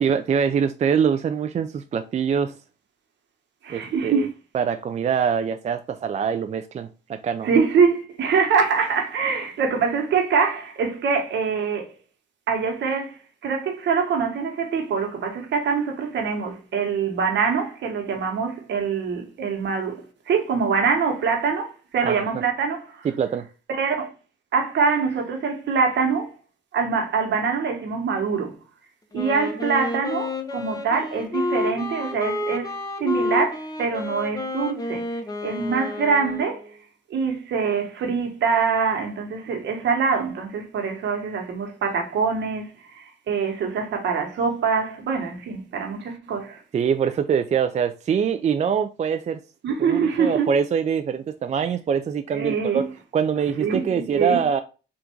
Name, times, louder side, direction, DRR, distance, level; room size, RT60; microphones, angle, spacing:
voice 1, 0.0-2.5 3.7-4.3 4.5-7.5 22.0-22.2 23.0-23.5 46.7-49.4 49.8-52.8 53.1-54.6, right 7 dB, 35° right, 0.4 m, -24 dB
voice 2, 3.6-4.3 7.4-11.9 12.5-13.2 13.4-23.1 23.7-24.1 24.5-26.3 26.7-28.6 29.1-35.1 35.4-36.7 37.1-42.7 42.9-46.6 49.6-50.5 52.3-52.9 53.6-54.4, right 5 dB, 65° right, 1.2 m, -24 dB
Wind instrument woodwind instrument, 29.1-36.8, left 2 dB, 20° left, 0.8 m, -30 dB
3.6 x 2.6 x 4.4 m
cardioid pair, 90°, 20 cm